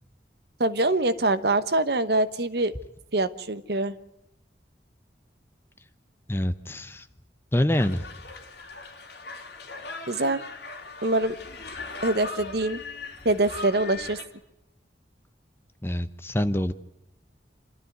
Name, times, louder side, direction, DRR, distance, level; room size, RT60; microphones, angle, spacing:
voice 1, 0.6-2.7 3.1-3.9 10.1-10.4 11.0-11.4 12.0-12.8 13.2-14.2, right 2 dB, 60° right, 13 dB, 1.1 m, -24 dB
voice 2, 6.3-7.1 7.5-8.1 15.8-16.7, left 1 dB, 15° left, 12 dB, 0.8 m, -25 dB
sound 1, 7.7-14.2, left 3 dB, 60° left, 3.4 m, -39 dB
27.0 x 12.5 x 9.4 m, 0.87 s
head